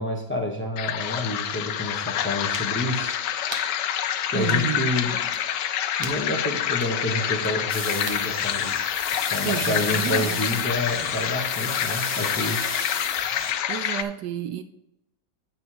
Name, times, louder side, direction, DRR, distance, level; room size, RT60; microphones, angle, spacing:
voice 1, 0.0-3.2 4.3-5.2 6.0-9.0 9.3-12.8, left 1 dB, 10° left, 1 dB, 1.1 m, -29 dB
sound 1, 0.8-14.0, left 10 dB, 85° left, 1.2 m, -27 dB
sound 2, 0.8-0.9 2.5-2.8 3.5-3.8 4.5-4.7 5.3-5.5 6.0-6.3 6.8-7.0 7.4-7.5 8.1-8.3 9.1-9.2, right 1 dB, 20° right, 0.9 m, -38 dB
voice 2, 4.3-4.9 9.4-10.6 13.7-14.6, right 9 dB, 75° right, 9 dB, 1.1 m, -30 dB
sound 3, 7.7-13.5, left 3 dB, 35° left, 1.9 m, -33 dB
9.0 x 5.4 x 4.7 m, 0.85 s
omnidirectional pair, 1.9 m